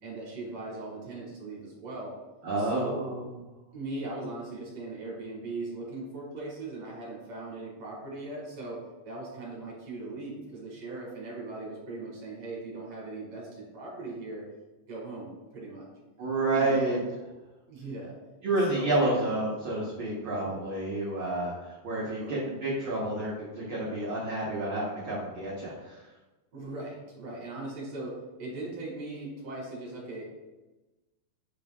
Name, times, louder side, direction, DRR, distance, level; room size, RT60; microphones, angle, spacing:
voice 1, 0.0-2.1 2.6-3.0 3.7-14.4 14.9-15.9 16.5-17.0 17.7-18.1 18.7-19.2 22.1-22.4 26.5-30.2, right 2 dB, 50° right, -4 dB, 2.5 m, -39 dB
voice 2, 2.4-3.2 16.2-17.0 18.4-26.0, right 2 dB, 75° right, -6 dB, 1.2 m, -29 dB
7.6 x 5.3 x 2.4 m, 1.1 s
omnidirectional pair, 4.1 m